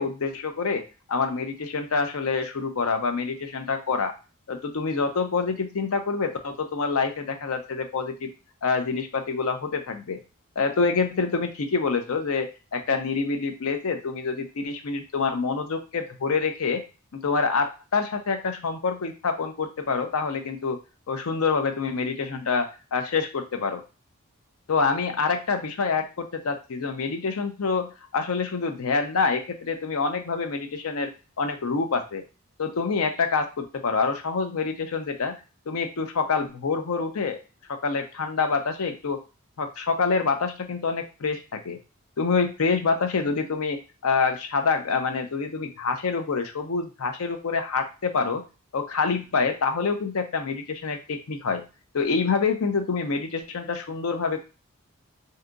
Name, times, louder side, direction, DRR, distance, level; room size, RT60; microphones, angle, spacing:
voice 1, 0.0-4.1 4.5-8.3 8.6-10.2 10.6-16.8 17.1-20.8 21.1-23.8 24.7-31.1 31.4-32.2 32.6-35.3 35.7-37.4 37.7-39.2 39.6-41.8 42.2-48.4 48.7-51.6 51.9-54.4, left 4 dB, 70° left, 7 dB, 0.5 m, -26 dB
2.7 x 2.3 x 3.8 m, 0.31 s
head